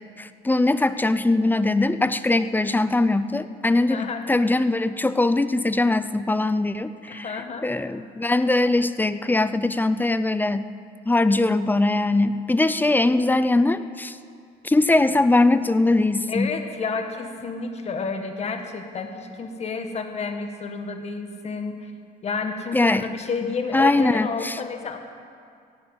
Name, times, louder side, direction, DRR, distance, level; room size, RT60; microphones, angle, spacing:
voice 1, 0.2-10.7 11.1-14.2 14.6-16.5 22.7-23.1 23.7-24.6, left 2 dB, 10° left, 13 dB, 0.5 m, -21 dB
voice 2, 3.9-4.2 7.1-7.7 16.3-21.9 22.2-25.0, left 4 dB, 40° left, 5 dB, 1.7 m, -30 dB
16.5 x 9.6 x 8.0 m, 2.3 s
cardioid pair, 110°, 17 cm